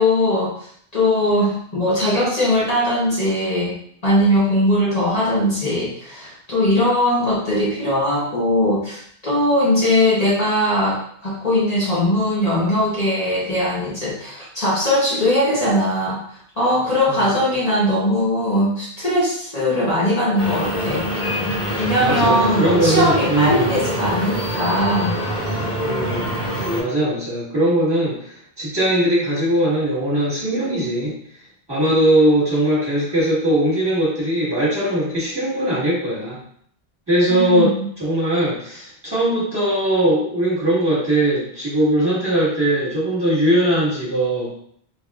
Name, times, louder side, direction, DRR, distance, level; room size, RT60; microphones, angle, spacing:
voice 1, 0.0-3.8 4.0-16.2 16.6-21.0 21.8-25.1 37.3-37.7, left 1 dB, 40° left, -8 dB, 1.0 m, -20 dB
sound 1, 20.4-26.8, equal, 80° left, 1.7 m, -24 dB
voice 2, 21.9-23.8 25.8-26.3 26.7-31.1 31.7-36.4 37.1-44.5, right 1 dB, 25° right, -9 dB, 1.4 m, -20 dB
3.5 x 3.1 x 2.3 m, 0.63 s
omnidirectional pair, 1.0 m